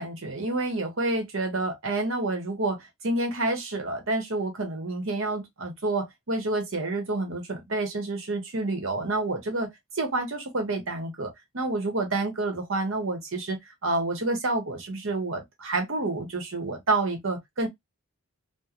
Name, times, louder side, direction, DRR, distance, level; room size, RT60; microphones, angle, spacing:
voice 1, 0.0-9.7 9.9-17.7, right 2 dB, 60° right, 0.9 m, -29 dB
3.0 x 2.1 x 2.4 m
head